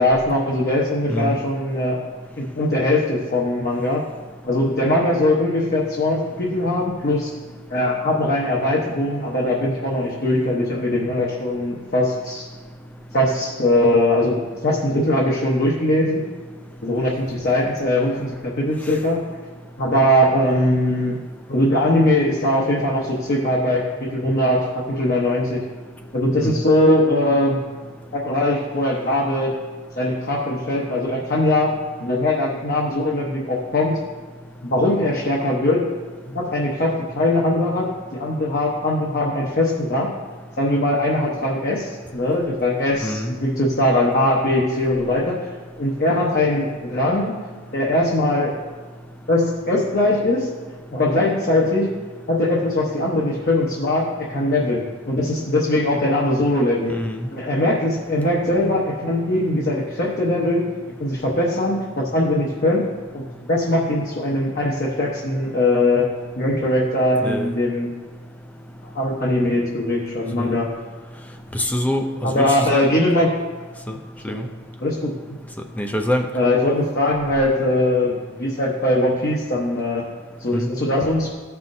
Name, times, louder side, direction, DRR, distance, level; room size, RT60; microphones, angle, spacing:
voice 1, 0.0-2.0 2.4-4.0 4.4-7.3 7.7-12.5 13.1-14.4 14.6-16.2 16.8-19.3 19.8-21.2 21.5-25.6 26.1-27.6 28.1-29.5 30.0-31.7 32.0-34.0 34.6-35.9 36.3-40.1 40.6-45.4 45.8-47.4 47.7-48.5 49.3-50.5 50.9-51.9 52.3-56.9 57.3-60.7 61.0-62.8 63.1-66.1 66.4-67.9 68.9-70.7 72.2-73.3 74.3-74.4 74.8-75.1 76.3-80.1 80.4-81.3, left 1 dB, 45° left, -4 dB, 0.9 m, -21 dB
voice 2, 43.0-43.3 56.9-57.3 67.2-67.5 70.4-70.5 71.5-72.9 73.9-74.0 74.2-74.5 75.8-76.3 80.5-80.7, equal, 5° left, 5 dB, 0.4 m, -24 dB
14.0 x 5.7 x 2.6 m, 1.4 s
head